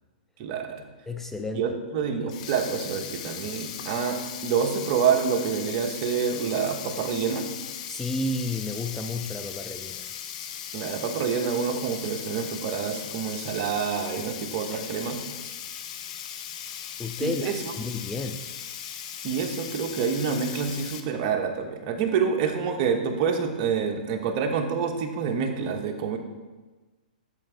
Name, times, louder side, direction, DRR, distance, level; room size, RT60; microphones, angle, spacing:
voice 1, 0.4-0.9 1.5-7.5 10.7-15.2 17.2-17.6 19.2-26.2, right 6 dB, 40° right, 4 dB, 1.1 m, -27 dB
voice 2, 1.1-1.7 7.9-10.1 14.7-14.9 17.0-17.5 17.8-18.4, left 2 dB, 5° left, 5 dB, 0.4 m, -31 dB
Sink (filling or washing), 2.2-21.0, left 9 dB, 50° left, 0.8 m, -38 dB
8.3 x 7.0 x 3.4 m, 1.2 s
hypercardioid pair, 130°, 5 cm